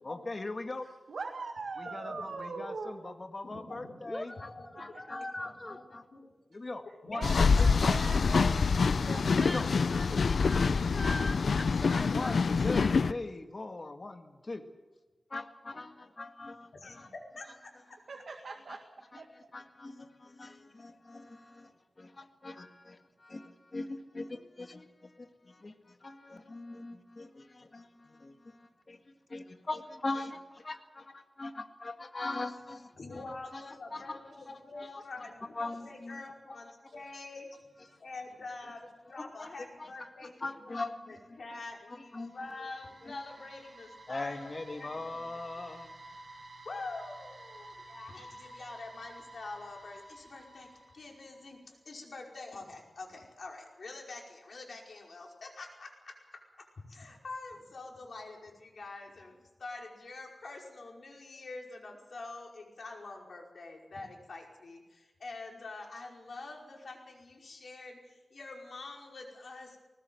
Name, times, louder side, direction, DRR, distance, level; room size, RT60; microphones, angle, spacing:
voice 1, 0.0-0.9 1.8-4.5 4.7-6.0 6.5-7.2 7.6-7.7 9.4-9.7 12.1-14.6 15.3-17.1 19.5-33.2 33.5-34.2 34.8-35.0 35.5-36.6 36.9-37.1 37.8-38.0 39.4-39.5 39.8-39.9 40.2-41.4 42.1-42.3 42.6-42.7 43.0-43.2 44.1-46.0, left 2 dB, 40° left, 6 dB, 1.9 m, -41 dB
voice 2, 0.8-3.1 4.7-5.0 6.9-9.5 18.1-19.5 34.4-34.5 35.7-35.8 36.9-37.0 37.9-38.0, right 4 dB, 85° right, 2 dB, 2.0 m, -42 dB
voice 3, 3.4-4.0 4.6-5.0 5.7-5.8 6.1-6.2 7.0-7.4 16.7-17.7 32.9-45.3 46.7-50.7 50.9-56.2 56.9-69.8, left 3 dB, 70° left, 0 dB, 5.2 m, -46 dB
voice 4, 4.0-5.8 9.4-13.2, left 1 dB, 20° left, 8 dB, 1.1 m, -42 dB
sound 1, 7.2-13.1, left 5 dB, 90° left, 0.6 m, -26 dB
sound 2, 41.7-51.6, right 1 dB, 65° right, 2.6 m, -52 dB
20.0 x 19.5 x 7.8 m, 1.2 s
wide cardioid pair, 105°, 0 cm